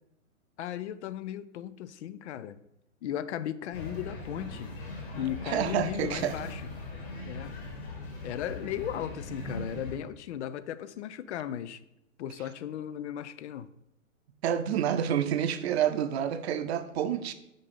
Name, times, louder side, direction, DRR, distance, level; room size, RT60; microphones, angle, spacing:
voice 1, 0.6-2.6 3.0-4.7 5.1-6.6 7.2-7.6 8.2-11.8 12.2-13.7, left 11 dB, 55° left, 0.5 m, -36 dB
sound 1, 3.7-10.0, left 2 dB, 85° left, 2.2 m, -40 dB
voice 2, 5.4-6.3 14.4-17.3, right 9 dB, 50° right, 0.7 m, -28 dB
5.2 x 3.8 x 5.5 m
hypercardioid pair, 135°, 41 cm